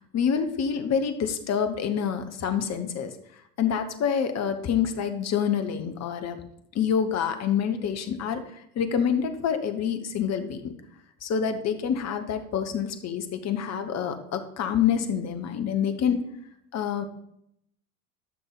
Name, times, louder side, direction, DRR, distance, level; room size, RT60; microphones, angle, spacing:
voice 1, 0.1-3.1 3.6-6.4 6.7-8.4 8.7-10.7 11.2-16.2 16.7-17.0, left 7 dB, 35° left, 8 dB, 1.3 m, -27 dB
12.5 x 6.1 x 4.0 m, 0.75 s
figure-of-eight pair, 70°, 43 cm